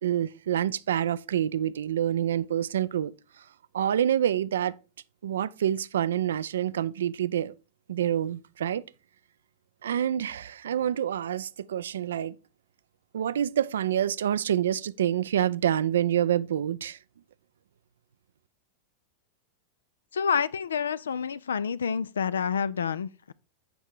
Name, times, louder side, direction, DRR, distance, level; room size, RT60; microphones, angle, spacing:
voice 1, 0.0-3.4 3.7-4.7 5.2-7.5 7.9-8.8 9.8-12.4 13.1-17.0, right 10 dB, 65° right, 0.4 m, -27 dB
voice 2, 20.1-23.3, left 6 dB, 70° left, 0.3 m, -28 dB
7.7 x 5.4 x 4.7 m
figure-of-eight pair, 90°, 0 cm